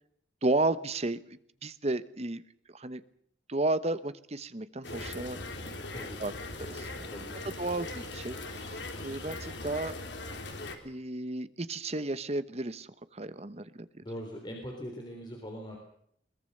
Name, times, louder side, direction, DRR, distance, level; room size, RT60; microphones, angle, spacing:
voice 1, 0.4-1.2 1.6-2.4 2.7-3.0 3.5-5.8 6.2-6.3 6.6-6.9 7.6-9.9 10.8-13.9, right 2 dB, 35° right, 14 dB, 1.0 m, -33 dB
sound 1, 4.8-10.8, left 2 dB, 75° left, 3.3 m, -40 dB
voice 2, 5.9-6.4 7.1-7.5 14.0-15.8, equal, 25° left, 1 dB, 3.6 m, -42 dB
22.0 x 20.5 x 6.7 m, 0.69 s
head